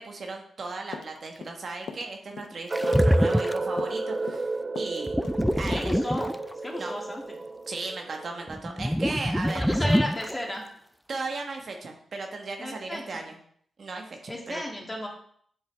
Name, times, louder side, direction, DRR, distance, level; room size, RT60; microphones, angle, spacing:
voice 1, 0.0-5.1 5.5-5.9 6.7-6.9 7.7-10.0 11.1-13.4 13.8-14.6, right 3 dB, 60° right, 3 dB, 1.2 m, -36 dB
sound 1, 0.9-1.6 1.9-2.1 2.4-2.6 2.8-3.5 3.8-4.0 4.3-4.5 4.8-5.0 5.2-5.4 5.7-5.8, left 6 dB, 75° left, 0.5 m, -40 dB
sound 2, 2.7-3.8 5.1-6.7 8.5-10.4, equal, ahead, 0.3 m, -25 dB
sound 3, 2.7-8.6, right 2 dB, 40° right, 0.6 m, -31 dB
voice 2, 5.7-6.3 6.6-7.2 9.5-10.6 12.6-13.2 14.3-15.1, left 1 dB, 20° left, 0 dB, 2.1 m, -33 dB
8.1 x 4.6 x 3.4 m, 0.63 s
supercardioid pair, 45°, 0 cm